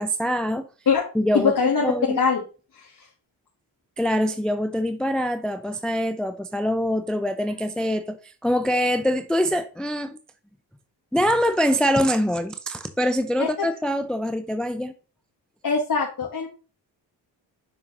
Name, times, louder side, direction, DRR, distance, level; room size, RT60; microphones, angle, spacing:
voice 1, 0.0-0.7 1.1-2.2 4.0-10.2 11.1-14.9, equal, ahead, 0.5 m, -24 dB
voice 2, 1.3-2.4 13.4-13.7 15.6-16.5, left 5 dB, 45° left, 1.5 m, -22 dB
6.7 x 6.2 x 3.0 m
supercardioid pair, 50°, 47 cm